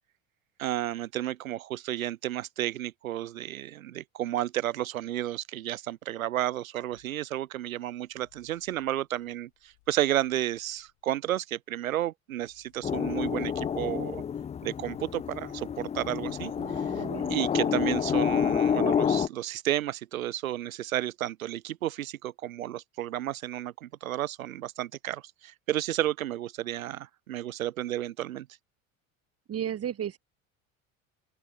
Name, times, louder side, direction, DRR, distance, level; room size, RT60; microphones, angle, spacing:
voice 1, 0.6-14.2 14.6-16.8 17.3-28.5, right 13 dB, 90° right, 0.9 m, -32 dB
sound 1, 6.9-7.2 8.1-11.1 12.3-14.6 15.9-17.0, left 26 dB, 70° left, 4.1 m, -63 dB
sound 2, 12.8-19.3, left 8 dB, 15° left, 0.4 m, -28 dB
voice 2, 16.6-17.8 29.5-30.2, right 9 dB, 35° right, 1.9 m, -35 dB
open air
hypercardioid pair, 75°, 40 cm